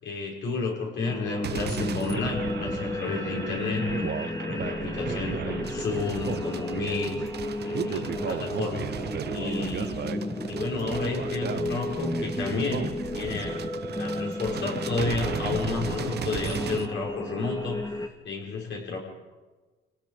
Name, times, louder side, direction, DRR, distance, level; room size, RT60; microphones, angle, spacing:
voice 1, 0.0-3.9 4.3-7.3 7.6-8.9 9.3-13.6 14.0-17.8 18.2-19.0, left 4 dB, 65° left, -2 dB, 6.2 m, -32 dB
sound 1, 1.0-18.1, left 1 dB, 20° left, 2.1 m, -33 dB
sound 2, 1.4-16.9, right 8 dB, 55° right, 1.0 m, -35 dB
28.0 x 18.5 x 5.3 m, 1.2 s
cardioid pair, 90°, 20 cm